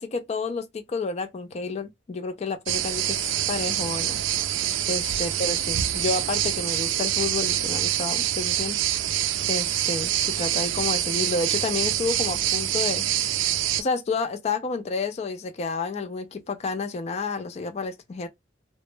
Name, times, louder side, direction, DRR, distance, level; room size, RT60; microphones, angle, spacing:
voice 1, 0.0-3.2 3.5-4.2 4.9-8.8 9.5-13.1 13.8-18.3, left 4 dB, 35° left, 0.4 m, -30 dB
sound 1, 2.7-13.8, right 12 dB, 85° right, 0.3 m, -26 dB
2.1 x 2.0 x 3.0 m
head